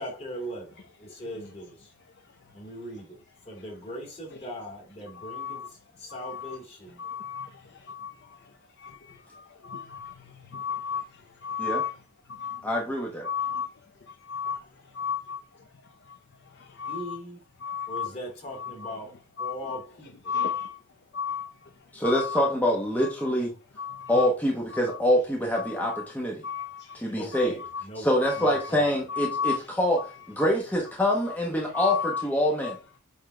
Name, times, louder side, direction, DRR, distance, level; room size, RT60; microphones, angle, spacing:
voice 1, 0.0-1.8 2.5-3.2 3.5-5.7 6.0-7.0 16.8-17.4 17.9-19.1 19.4-20.3 27.1-28.1 28.4-28.9, equal, 30° left, 2.4 m, -39 dB
voice 2, 1.2-1.5 2.2-2.5 3.5-3.9 4.3-4.5 5.1-5.7 6.1-12.0 12.3-12.8 13.2-17.2 17.6-18.2 18.5-20.8 21.1-22.5 23.0-23.3 23.8-24.3 24.7-25.0 25.6-26.0 26.4-27.8 28.2-28.7 29.1-29.7 30.0-30.1 30.4-30.5 31.3-31.4 31.7-32.3 32.6-32.8, left 7 dB, 50° left, 0.6 m, -35 dB
voice 3, 12.6-13.3 21.9-23.5 24.1-26.4 26.9-27.6 28.0-30.0 30.3-32.8, equal, 10° left, 1.1 m, -25 dB
8.5 x 3.7 x 3.3 m
head